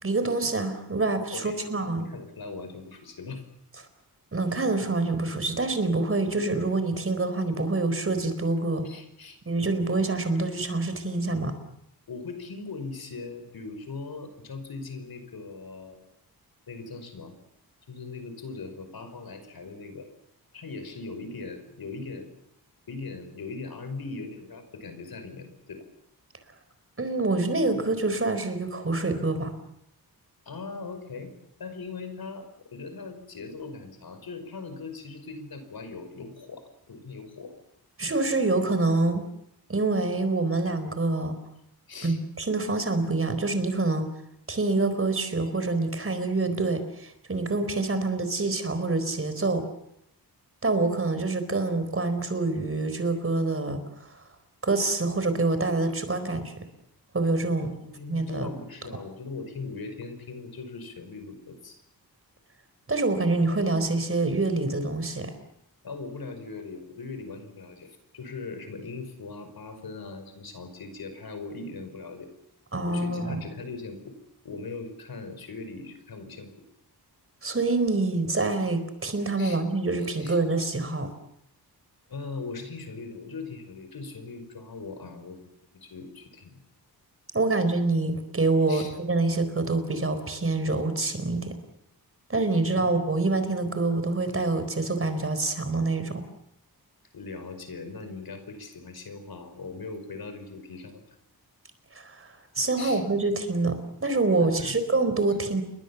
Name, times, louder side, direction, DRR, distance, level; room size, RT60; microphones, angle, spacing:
voice 1, 0.0-2.1 4.3-8.9 9.5-11.5 27.0-29.6 38.0-39.2 39.7-41.4 42.0-44.1 44.5-49.6 50.6-54.2 54.6-56.5 57.1-57.7 58.1-58.5 62.9-65.3 72.7-73.4 77.4-81.1 87.3-91.6 92.3-96.2 101.9-105.6, right 3 dB, 35° right, 10 dB, 4.3 m, -26 dB
voice 2, 1.3-3.5 8.8-9.4 12.1-16.0 16.7-17.4 17.9-20.1 20.5-22.3 22.9-25.8 30.5-31.3 31.6-37.5 41.9-42.2 57.5-61.8 65.8-72.3 72.8-74.2 74.4-76.5 79.4-79.6 80.0-80.4 82.1-85.5 85.8-86.6 88.7-89.0 92.8-92.9 97.1-101.0 102.8-103.0 104.4-104.8, left 4 dB, 65° left, 8 dB, 5.3 m, -40 dB
29.5 x 22.5 x 7.2 m, 0.77 s
wide cardioid pair, 125°, 39 cm